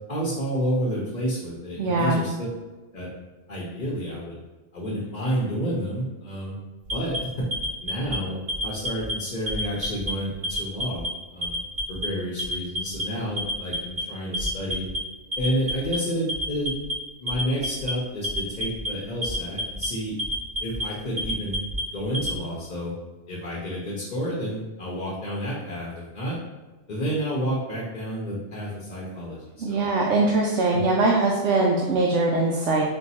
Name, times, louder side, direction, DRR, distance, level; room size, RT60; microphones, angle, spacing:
voice 1, 0.1-2.5 2.9-3.1 3.5-4.4 4.7-6.5 6.9-7.5 7.8-8.4 8.6-11.0 11.3-11.5 11.9-14.8 15.4-16.7 17.2-20.1 20.6-21.6 21.9-22.9 23.3-26.4 26.9-29.9 30.7-30.8, equal, 40° left, -5 dB, 0.8 m, -30 dB
voice 2, 1.8-2.2 29.6-32.8, right 2 dB, 70° right, -1 dB, 0.8 m, -22 dB
Alarm, 6.8-8.1 8.5-9.1 9.5-10.1 10.4-11.1 11.4-12.1 12.4-13.0 13.4-14.0 14.3-15.0 15.3-16.0 16.3-16.9 17.3-17.9 18.2-18.9 19.2-19.9 20.2-20.8 21.2-22.4, equal, 35° right, 1.1 m, -29 dB
4.4 x 2.3 x 4.1 m, 1.2 s
omnidirectional pair, 1.4 m